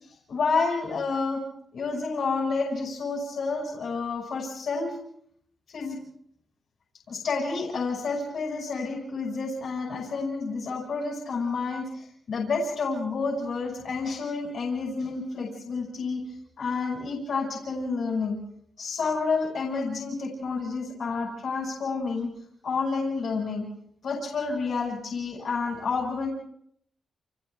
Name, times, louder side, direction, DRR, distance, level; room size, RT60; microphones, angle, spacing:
voice 1, 0.3-1.4 1.7-5.0 5.7-6.0 7.1-16.2 16.6-18.4 18.8-22.3 22.6-23.7 24.0-26.3, left 4 dB, 65° left, -2 dB, 5.8 m, -29 dB
29.5 x 29.0 x 3.4 m, 0.67 s
wide cardioid pair, 130°, 0 cm